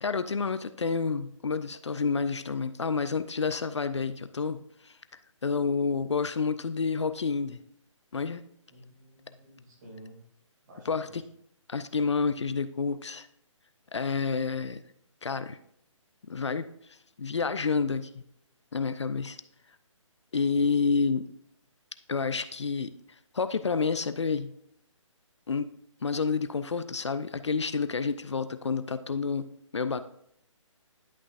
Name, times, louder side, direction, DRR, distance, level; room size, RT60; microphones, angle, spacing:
voice 1, 0.0-5.0 5.4-7.6 8.1-8.4 10.9-11.2 11.7-13.3 13.9-14.8 15.2-15.6 16.3-16.7 17.2-18.1 18.7-19.4 20.3-21.3 22.1-22.9 23.3-24.5 25.5-25.7 26.0-30.0, left 5 dB, 60° left, 11 dB, 0.4 m, -29 dB
voice 2, 8.7-10.2 10.6-11.2, equal, 35° right, -2 dB, 2.8 m, -51 dB
11.0 x 6.1 x 2.5 m, 0.72 s
figure-of-eight pair, 140°, 17 cm